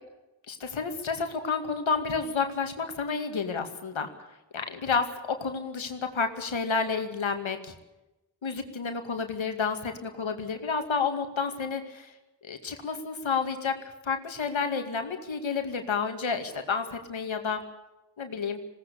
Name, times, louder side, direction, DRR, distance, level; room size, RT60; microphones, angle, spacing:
voice 1, 0.5-4.1 4.5-7.7 8.4-12.1 12.4-17.6 18.2-18.6, left 5 dB, 90° left, 6 dB, 2.4 m, -30 dB
21.0 x 18.0 x 8.5 m, 1.0 s
wide cardioid pair, 70°, 45 cm